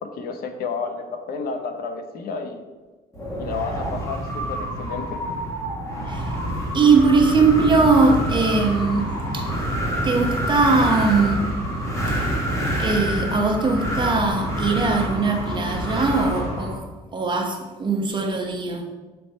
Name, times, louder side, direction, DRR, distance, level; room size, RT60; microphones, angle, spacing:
voice 1, 0.0-2.6 3.3-5.2, left 4 dB, 60° left, 0.7 m, -31 dB
Wind, 3.1-16.8, equal, 15° left, 1.5 m, -27 dB
voice 2, 6.7-9.5 10.0-11.6 12.8-16.8 17.1-18.9, right 4 dB, 30° right, 0.9 m, -20 dB
6.8 x 3.3 x 4.2 m
cardioid pair, 110°, 17 cm